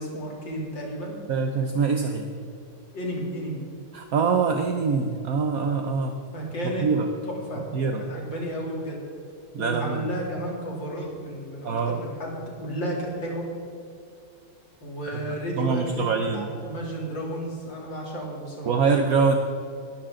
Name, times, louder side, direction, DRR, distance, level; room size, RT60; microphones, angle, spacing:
voice 1, 0.0-1.1 2.9-3.6 6.3-6.9 7.2-7.6 8.1-9.0 9.6-13.5 14.8-18.7, equal, 55° left, -3 dB, 3.9 m, -32 dB
voice 2, 1.3-2.3 3.9-6.2 6.6-7.1 7.7-8.1 9.5-10.1 11.6-12.0 15.1-15.2 15.5-16.5 18.7-19.3, right 5 dB, 55° right, 4 dB, 1.0 m, -24 dB
20.0 x 13.5 x 3.8 m, 2.4 s
omnidirectional pair, 2.4 m